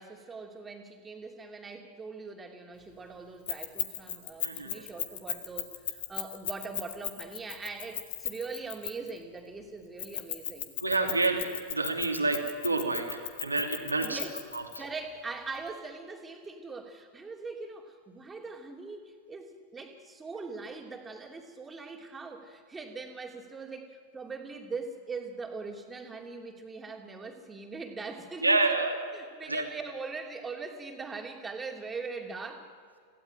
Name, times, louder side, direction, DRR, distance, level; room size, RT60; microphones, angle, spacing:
voice 1, 0.0-10.7 14.0-14.4 14.8-28.8 29.1-32.7, right 4 dB, 15° right, 2 dB, 2.8 m, -41 dB
Keys jangling, 3.5-9.2 10.0-14.8, left 10 dB, 60° left, 2.0 m, -35 dB
voice 2, 4.4-4.8 10.8-14.2 28.4-29.0 29.5-29.6, right 3 dB, 80° right, 3 dB, 2.9 m, -28 dB
26.5 x 16.5 x 8.9 m, 2.2 s
figure-of-eight pair, 90°, 0 cm